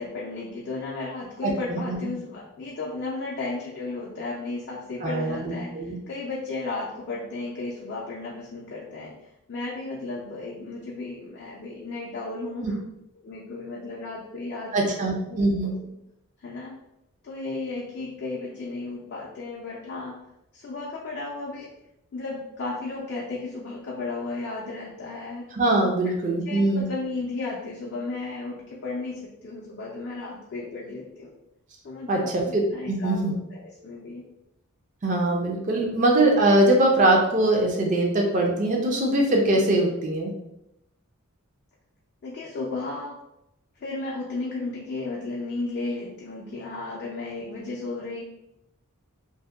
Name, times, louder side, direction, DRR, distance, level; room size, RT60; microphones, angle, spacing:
voice 1, 0.0-12.8 13.2-15.0 15.3-15.7 16.4-16.8 17.2-20.3 20.5-21.7 22.1-25.5 26.5-31.4 31.8-34.2 35.7-35.9 42.2-43.2 43.8-48.2, left 3 dB, 50° left, -4 dB, 0.4 m, -34 dB
voice 2, 1.4-2.0 5.0-6.0 12.6-12.7 14.7-15.7 25.5-26.9 32.1-33.3 35.0-40.3, right 1 dB, 35° right, 1 dB, 0.4 m, -22 dB
2.6 x 2.1 x 2.3 m, 0.85 s
head